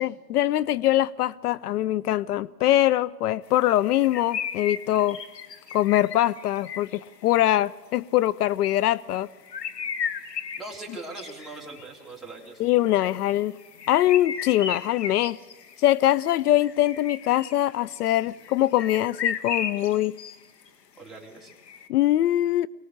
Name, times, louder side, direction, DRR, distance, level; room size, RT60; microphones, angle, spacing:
voice 1, 0.0-5.2 5.7-9.3 12.6-13.5 13.9-15.4 15.8-20.1 21.9-22.7, left 14 dB, 70° left, 0.6 m, -23 dB
sound 1, 3.9-7.1 8.7-8.9 9.3-11.9 12.7-20.4 20.6-20.7 21.5-21.9, left 7 dB, 85° left, 2.2 m, -35 dB
voice 2, 10.6-12.7 21.0-21.5, right 3 dB, ahead, 3.6 m, -40 dB
23.0 x 19.0 x 6.5 m
hypercardioid pair, 145°, 48 cm